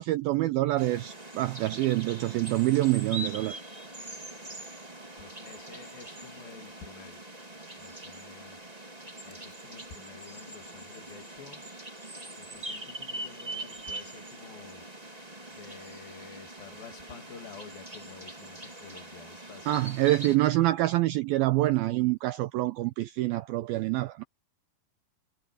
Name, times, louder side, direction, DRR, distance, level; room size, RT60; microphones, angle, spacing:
voice 1, 0.0-3.6 19.7-24.2, right 17 dB, 85° right, 2.1 m, -26 dB
sound 1, 0.8-20.4, right 1 dB, 10° right, 2.1 m, -43 dB
voice 2, 5.2-7.2 7.8-8.6 9.2-11.6 12.4-14.8 15.5-20.0, left 6 dB, 60° left, 4.2 m, -50 dB
omnidirectional pair, 4.9 m